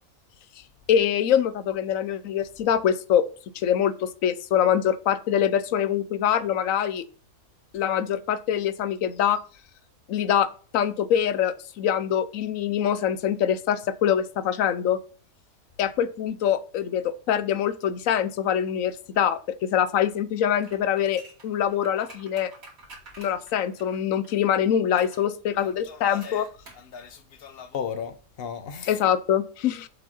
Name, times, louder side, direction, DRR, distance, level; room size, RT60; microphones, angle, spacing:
voice 1, 0.9-3.3 3.5-7.0 7.7-9.4 10.1-10.5 10.7-15.0 15.8-22.5 23.2-26.5 28.9-29.9, left 9 dB, 70° left, 1.0 m, -24 dB
sound 1, 20.6-24.4 25.0-25.3 26.2-26.9 27.1-27.2, right 2 dB, 70° right, 3.2 m, -48 dB
voice 2, 25.6-26.5 26.8-29.0, left 7 dB, 50° left, 0.9 m, -36 dB
7.4 x 5.5 x 4.3 m
omnidirectional pair, 1.5 m